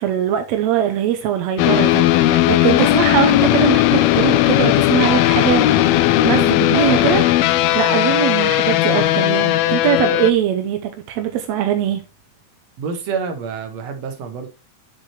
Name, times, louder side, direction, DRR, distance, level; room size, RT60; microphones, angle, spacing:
voice 1, 0.0-5.6 6.2-12.0, right 10 dB, 75° right, 1.7 m, -21 dB
sound 1, 1.6-10.3, left 14 dB, 90° left, 1.5 m, -16 dB
voice 2, 12.8-14.5, right 5 dB, 60° right, 2.3 m, -27 dB
7.4 x 6.6 x 3.0 m
omnidirectional pair, 3.7 m